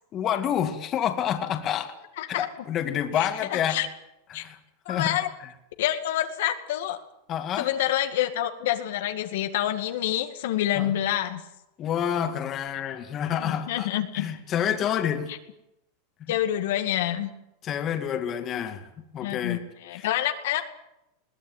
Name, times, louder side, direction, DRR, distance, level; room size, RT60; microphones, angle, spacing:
voice 1, 0.1-1.9 2.3-3.8 4.3-4.6 4.9-5.2 7.3-7.7 10.7-10.9 11.8-13.9 14.1-15.3 17.6-19.6 19.9-20.1, left 9 dB, 30° left, 6 dB, 2.2 m, -28 dB
voice 2, 3.1-3.9 4.3-4.4 4.9-5.3 5.8-7.0 7.6-11.4 13.4-14.3 16.3-17.3 19.2-20.6, left 12 dB, 75° left, 6 dB, 2.1 m, -27 dB
21.5 x 17.5 x 9.3 m, 0.87 s
supercardioid pair, 140°, 0 cm